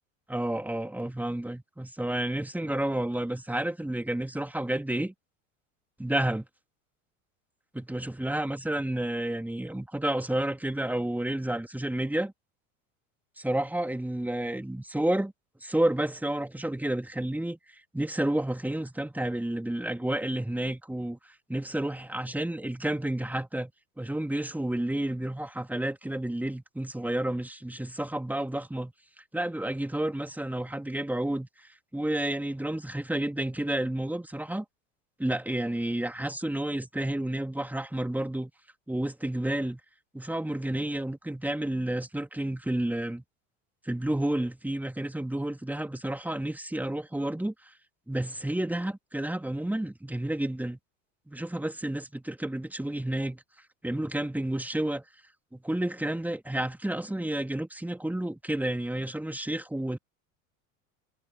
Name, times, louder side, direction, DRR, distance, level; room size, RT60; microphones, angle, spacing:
voice 1, 0.3-5.1 6.0-6.5 7.7-12.3 13.4-15.3 15.6-17.6 17.9-23.7 24.0-28.9 29.3-34.6 35.2-38.5 38.9-39.8 40.1-43.2 43.9-47.5 48.1-50.8 51.3-53.4 53.8-55.0 55.5-60.0, right 1 dB, 5° right, 2.7 m, -30 dB
figure-of-eight pair, 75°, 40 cm